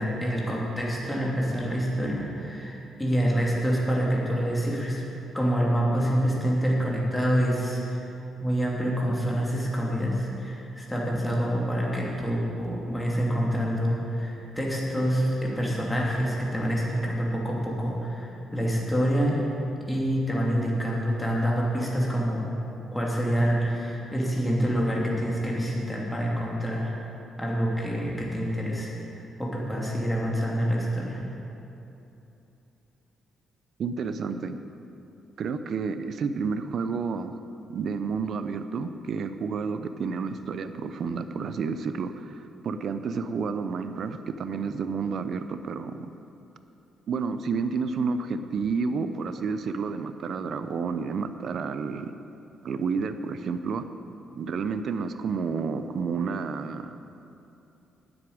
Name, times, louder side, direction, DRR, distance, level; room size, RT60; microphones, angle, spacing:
voice 1, 0.0-5.0 5.3-8.0 8.4-19.4 19.9-22.5 22.9-26.9 27.4-28.9 29.4-31.2, equal, 10° left, -3 dB, 2.8 m, -26 dB
voice 2, 33.8-34.6 35.4-37.3 37.7-46.1 47.1-52.1 52.6-53.9 54.3-57.0, right 5 dB, 60° right, 10 dB, 0.7 m, -30 dB
9.7 x 8.0 x 8.7 m, 2.9 s
cardioid pair, 90°, 0 cm